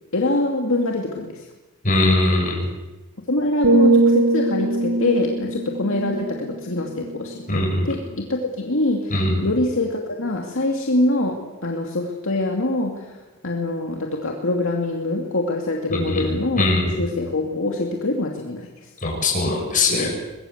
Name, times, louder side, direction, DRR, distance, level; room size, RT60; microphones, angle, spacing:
voice 1, 0.1-1.5 3.3-9.2 9.4-13.1 13.4-16.7 17.0-18.9, left 2 dB, 65° left, 1 dB, 2.6 m, -24 dB
voice 2, 1.8-2.7 7.5-7.9 9.1-9.5 15.9-16.3 16.6-17.0 19.0-20.2, left 2 dB, 40° left, 0 dB, 7.9 m, -21 dB
sound 1, 3.6-7.6 8.0-8.3, right 2 dB, 80° right, 4.3 m, -21 dB
23.0 x 21.5 x 8.1 m, 1.1 s
head